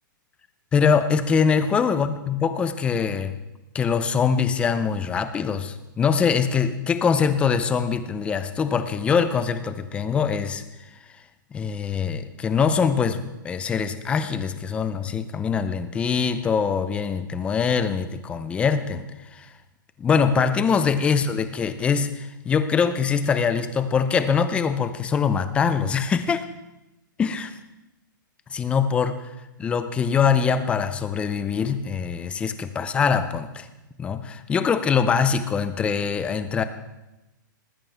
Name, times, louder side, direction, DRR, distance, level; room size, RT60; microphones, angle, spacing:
voice 1, 0.7-3.4 3.7-10.6 11.5-19.0 19.3-19.5 20.0-26.4 27.2-27.5 28.5-29.2 29.6-33.7 34.0-36.6, left 6 dB, 10° left, 11 dB, 0.6 m, -23 dB
19.0 x 14.5 x 3.5 m, 0.97 s
hypercardioid pair, 160°, 11 cm